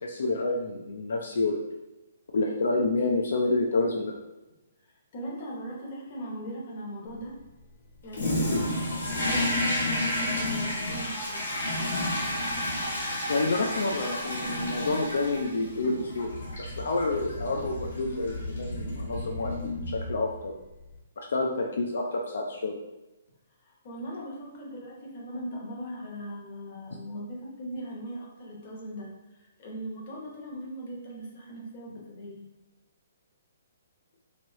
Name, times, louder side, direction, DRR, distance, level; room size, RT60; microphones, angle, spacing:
voice 1, 0.0-1.6 2.3-4.2 13.3-20.6 21.2-22.8, left 2 dB, 70° left, 1 dB, 0.4 m, -29 dB
voice 2, 5.1-7.4 8.0-11.4 23.6-32.4, right 1 dB, 30° left, -3 dB, 0.8 m, -39 dB
Toilet flush, 8.1-20.5, left 1 dB, 90° left, 1.1 m, -31 dB
3.0 x 2.7 x 3.0 m, 1.0 s
hypercardioid pair, 175°, 0 cm